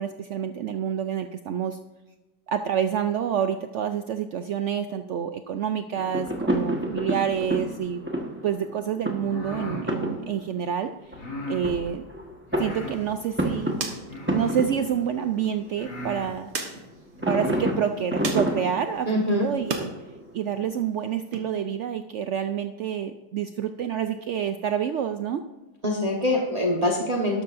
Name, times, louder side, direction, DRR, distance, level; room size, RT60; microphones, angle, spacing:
voice 1, 0.0-1.8 2.5-8.0 8.4-10.9 11.5-12.0 12.6-13.7 14.3-16.5 17.3-19.9 20.3-25.4, right 8 dB, 85° right, 8 dB, 0.6 m, -28 dB
sound 1, 6.0-16.3 17.2-20.8, right 1 dB, 10° right, 1.1 m, -30 dB
sound 2, 9.1-9.9 11.1-11.6 12.5-13.0 14.0-14.6 15.3-15.4 15.7-16.3 17.1-17.7, equal, 80° left, 4.3 m, -36 dB
sound 3, 12.7-19.9 20.3-21.4, right 4 dB, 70° right, 1.9 m, -39 dB
voice 2, 19.1-19.5 25.8-27.4, left 1 dB, 25° right, 0 dB, 1.2 m, -24 dB
12.5 x 12.5 x 2.6 m, 1.1 s
omnidirectional pair, 1.8 m